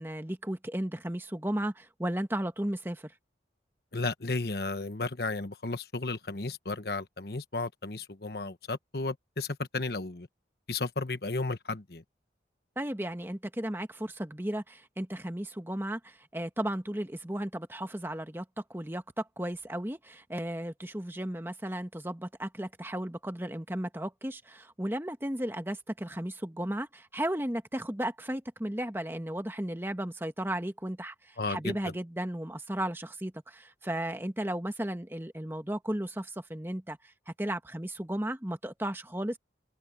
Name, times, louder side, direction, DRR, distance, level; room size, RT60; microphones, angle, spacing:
voice 1, 0.0-3.1 12.8-18.4 18.7-39.4, right 1 dB, 10° right, 1.3 m, -35 dB
voice 2, 3.9-10.3 10.7-12.0 31.4-31.8, left 3 dB, 60° left, 1.2 m, -33 dB
head